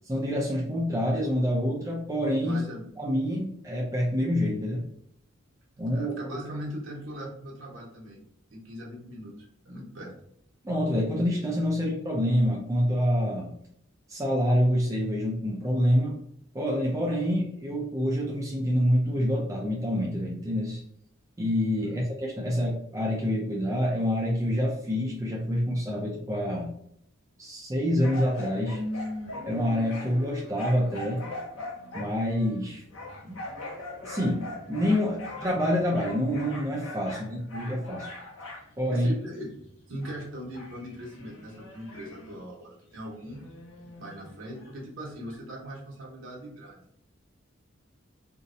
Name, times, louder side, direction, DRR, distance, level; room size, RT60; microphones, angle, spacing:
voice 1, 0.1-2.6 3.0-4.8 5.8-6.1 10.6-13.5 14.1-16.2 16.5-20.8 21.4-26.7 27.4-28.8 29.5-31.2 31.9-32.8 33.2-33.4 33.9-38.1 38.8-39.1, equal, 15° right, -3 dB, 0.4 m, -27 dB
voice 2, 2.4-2.8 5.9-8.2 8.5-10.1 21.8-21.9 38.9-39.5 39.9-43.4 44.0-46.8, equal, 70° right, -3 dB, 0.8 m, -40 dB
sound 1, 28.0-42.4 42.9-44.7 45.3-45.4, left 2 dB, 75° left, 0.6 m, -41 dB
2.6 x 2.0 x 2.5 m, 0.71 s
head